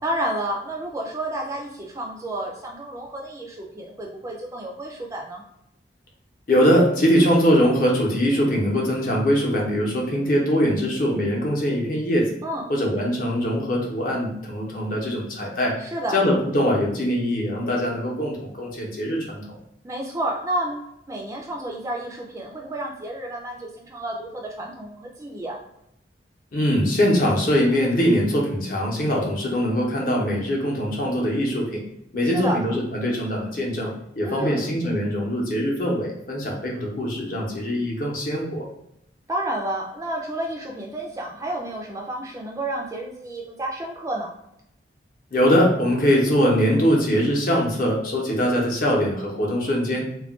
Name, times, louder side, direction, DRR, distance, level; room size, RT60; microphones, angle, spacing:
voice 1, 0.0-5.4 12.4-12.6 15.8-16.2 19.8-25.6 32.2-32.6 34.2-34.8 39.3-44.4, right 1 dB, 20° right, 0 dB, 0.3 m, -30 dB
voice 2, 6.5-12.3 12.7-15.8 16.1-19.4 26.5-31.8 32.1-38.7 45.3-50.0, equal, 50° left, -2 dB, 0.7 m, -22 dB
2.3 x 2.1 x 3.5 m, 0.80 s
head